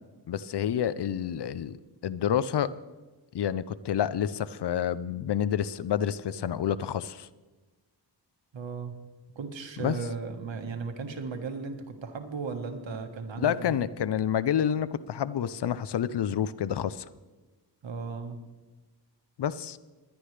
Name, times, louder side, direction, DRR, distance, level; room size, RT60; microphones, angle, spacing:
voice 1, 0.3-1.8 2.0-2.7 3.3-7.3 9.8-10.0 13.4-17.1 19.4-19.8, left 9 dB, 65° left, 17 dB, 0.6 m, -28 dB
voice 2, 8.5-8.9 9.3-13.7 17.8-18.4, right 4 dB, 80° right, 5 dB, 1.6 m, -36 dB
20.0 x 11.0 x 3.3 m, 1.2 s
cardioid pair, 70°, 44 cm